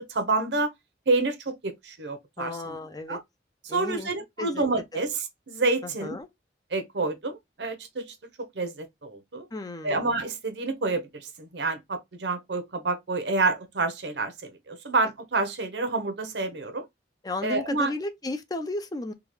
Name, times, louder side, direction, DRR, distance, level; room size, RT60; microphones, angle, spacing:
voice 1, 0.1-0.7 1.1-2.8 3.1-3.2 3.6-6.2 6.7-9.5 9.8-16.9 17.4-17.9, right 3 dB, 75° right, 0.9 m, -28 dB
voice 2, 2.4-3.2 3.7-4.1 4.4-4.6 5.8-6.3 9.5-10.1 17.2-19.1, left 2 dB, 20° left, 0.5 m, -34 dB
3.6 x 2.3 x 3.1 m
head